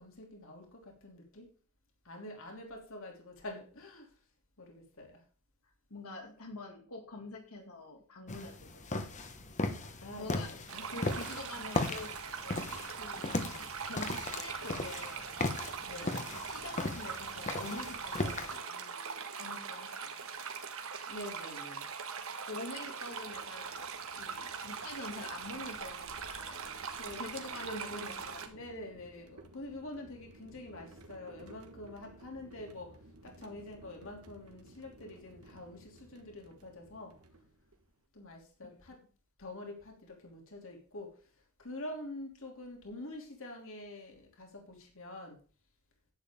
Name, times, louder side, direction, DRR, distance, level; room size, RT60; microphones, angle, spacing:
voice 1, 0.0-1.5 2.0-4.1 4.6-5.1 10.0-11.0 11.3-11.5 15.8-16.2 21.1-21.9 27.0-28.0 28.3-32.9 33.2-37.1 38.1-39.0 39.4-41.1 41.6-45.4, left 1 dB, 65° left, 1 dB, 3.0 m, -46 dB
voice 2, 5.9-9.1 10.0-15.2 16.0-20.4 22.5-26.6 27.0-28.6, left 2 dB, 85° left, 1 dB, 2.4 m, -47 dB
sound 1, 8.3-18.6, left 2 dB, 35° left, 1.2 m, -37 dB
sound 2, 10.7-28.5, right 6 dB, 65° right, 1.6 m, -41 dB
sound 3, 23.0-38.0, right 1 dB, 85° right, 1.6 m, -57 dB
11.0 x 9.2 x 3.7 m, 0.39 s
head